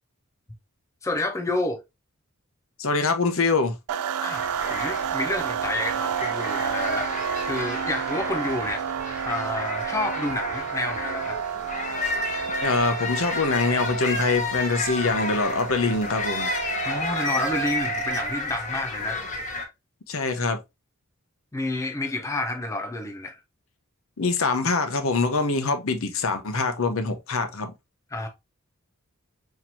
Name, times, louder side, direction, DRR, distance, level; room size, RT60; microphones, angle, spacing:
voice 1, 1.0-1.8 4.2-4.4 4.7-7.1 7.5-8.8 9.3-11.4 16.8-19.3 21.5-23.4 28.1-28.3, left 2 dB, 15° left, 0.4 m, -29 dB
voice 2, 2.8-3.7 12.6-16.5 20.1-20.6 24.2-27.7, left 3 dB, 65° left, 0.7 m, -24 dB
sound 1, 3.9-18.4, right 7 dB, 85° right, 0.3 m, -31 dB
sound 2, 4.3-19.7, left 3 dB, 35° left, 0.8 m, -32 dB
4.3 x 2.9 x 2.6 m
head